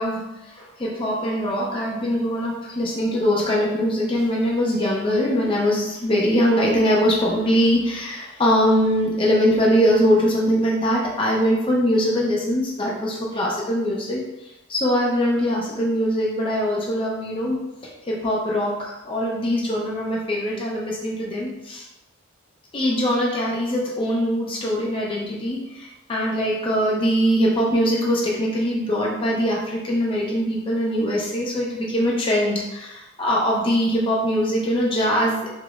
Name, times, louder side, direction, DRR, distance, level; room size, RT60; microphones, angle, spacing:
voice 1, 0.0-21.8 22.7-35.5, equal, 25° left, -3 dB, 0.5 m, -22 dB
4.8 x 2.0 x 2.4 m, 0.96 s
head